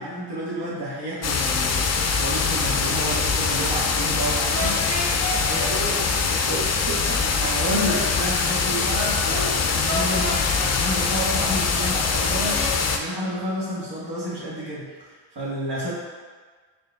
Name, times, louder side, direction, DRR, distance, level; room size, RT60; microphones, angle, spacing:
voice 1, 0.0-4.9 7.3-15.9, equal, 65° right, -7 dB, 1.5 m, -30 dB
sound 1, 1.2-13.0, left 5 dB, 40° left, 0.4 m, -23 dB
sound 2, 4.5-5.7 9.9-10.7 12.3-12.7, left 1 dB, 15° left, 1.1 m, -30 dB
voice 2, 5.5-7.5 9.2-9.6, right 1 dB, 50° right, -7 dB, 0.8 m, -33 dB
4.4 x 3.3 x 2.4 m, 1.5 s
cardioid pair, 50°, 44 cm